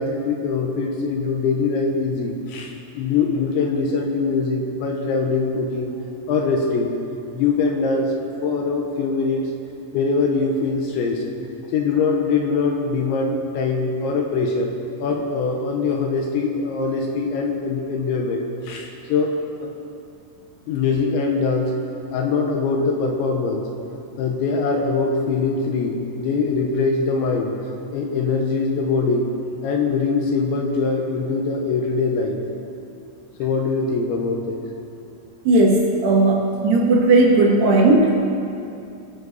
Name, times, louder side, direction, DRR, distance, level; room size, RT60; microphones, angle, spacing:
voice 1, 0.0-5.9 6.3-6.9 7.3-8.1 8.4-9.5 9.9-11.2 11.6-14.7 15.0-19.3 19.6-19.7 20.7-21.7 22.1-23.6 24.2-27.5 27.9-29.3 29.6-32.4 33.4-34.6, left 4 dB, 75° left, 1 dB, 3.1 m, -22 dB
voice 2, 35.5-38.1, right 2 dB, 65° right, -2 dB, 3.2 m, -16 dB
26.0 x 10.5 x 4.1 m, 2.6 s
omnidirectional pair, 5.9 m